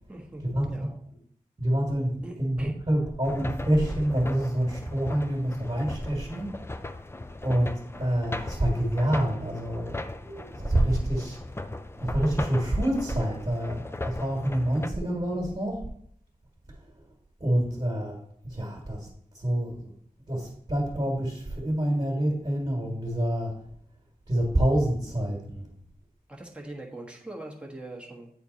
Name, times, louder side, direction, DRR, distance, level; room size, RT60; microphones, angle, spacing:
voice 1, 0.1-1.0 2.2-2.8 26.3-28.3, right 1 dB, 5° right, -1 dB, 1.4 m, -42 dB
voice 2, 1.6-6.7 7.4-11.4 12.0-15.9 16.7-17.0 17.4-18.2 18.4-19.1 19.3-19.9 20.3-23.6 24.3-25.7, right 1 dB, 35° right, -2 dB, 1.9 m, -27 dB
sound 1, 3.2-14.9, left 2 dB, 15° left, 0.4 m, -38 dB
8.7 x 4.4 x 4.0 m, 0.66 s
wide cardioid pair, 75°, 15 cm